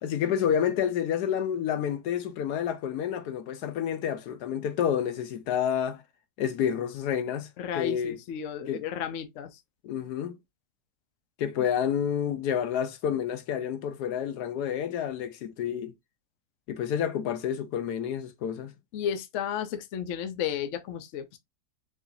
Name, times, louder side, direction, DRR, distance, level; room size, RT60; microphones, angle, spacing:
voice 1, 0.0-6.0 6.4-7.5 7.7-8.2 8.7-8.8 9.8-10.4 11.4-15.9 16.7-18.7, left 9 dB, 75° left, 1.2 m, -29 dB
voice 2, 7.6-9.6 18.9-21.4, left 9 dB, 60° left, 0.8 m, -33 dB
4.9 x 2.4 x 2.6 m
omnidirectional pair, 1.7 m